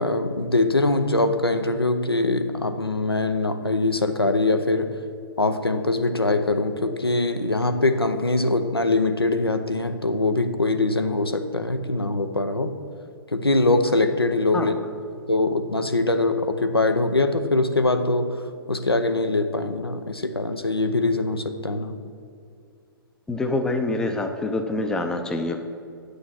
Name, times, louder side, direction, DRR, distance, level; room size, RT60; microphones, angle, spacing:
voice 1, 0.0-5.0 5.4-12.8 13.3-14.8 15.3-18.3 18.7-22.0, left 2 dB, 85° left, 8 dB, 0.7 m, -23 dB
voice 2, 23.3-25.6, left 2 dB, 5° left, 6 dB, 0.5 m, -26 dB
9.5 x 6.5 x 6.1 m, 2.4 s
figure-of-eight pair, 120°, 12 cm